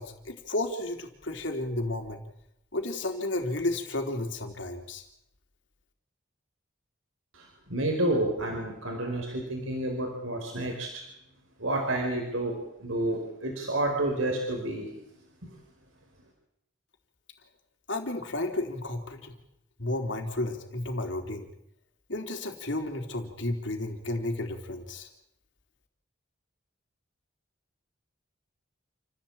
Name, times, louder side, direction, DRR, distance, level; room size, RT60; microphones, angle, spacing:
voice 1, 0.0-2.2 2.7-5.0 17.9-19.3 19.8-21.5 22.1-25.1, left 2 dB, 65° left, 4 dB, 3.5 m, -32 dB
voice 2, 7.7-11.0 11.6-12.5 12.8-14.9 15.4-15.5, right 1 dB, 85° right, 1 dB, 4.9 m, -29 dB
28.5 x 15.5 x 8.8 m, 0.79 s
head